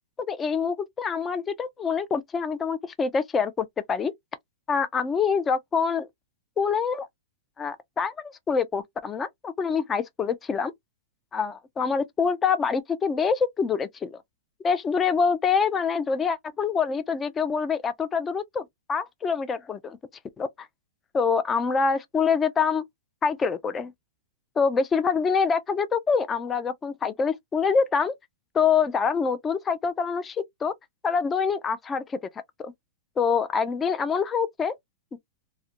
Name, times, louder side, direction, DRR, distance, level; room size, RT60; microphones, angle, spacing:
voice 1, 0.3-4.1 4.7-6.1 6.6-7.1 7.6-10.7 11.3-14.2 14.6-20.0 20.4-20.7 21.1-22.8 23.2-23.9 24.6-28.1 28.5-30.7 31.0-32.2 32.6-32.7 33.2-34.8, left 5 dB, 15° left, 0.3 m, -25 dB
2.4 x 2.1 x 2.7 m
hypercardioid pair, 130°, 0 cm